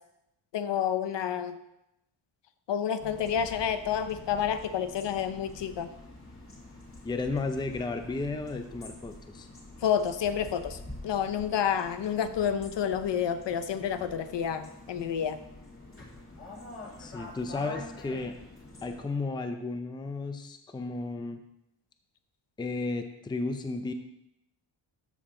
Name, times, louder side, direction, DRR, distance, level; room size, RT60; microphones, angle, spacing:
voice 1, 0.5-1.5 2.7-5.9 9.8-10.8 11.0-15.4, left 8 dB, 60° left, 11 dB, 0.7 m, -29 dB
sound 1, 3.0-19.0, left 1 dB, 25° left, 2.2 m, -47 dB
voice 2, 7.0-9.5 17.0-18.4 18.8-21.4 22.6-23.9, left 3 dB, 10° left, 7 dB, 0.5 m, -33 dB
13.0 x 6.8 x 3.8 m, 0.85 s
wide cardioid pair, 170°, 48 cm